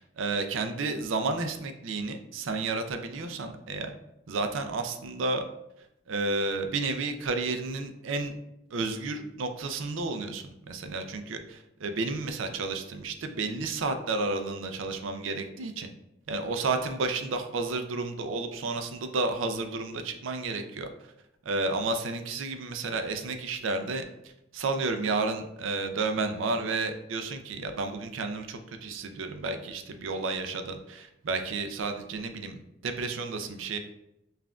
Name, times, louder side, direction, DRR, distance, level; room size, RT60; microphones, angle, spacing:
voice 1, 0.0-3.9 4.3-5.4 6.1-8.3 8.7-15.9 16.3-20.9 21.5-24.0 24.5-32.6 32.8-33.8, right 3 dB, 70° right, 7 dB, 0.4 m, -31 dB
5.5 x 2.4 x 2.3 m, 0.87 s
head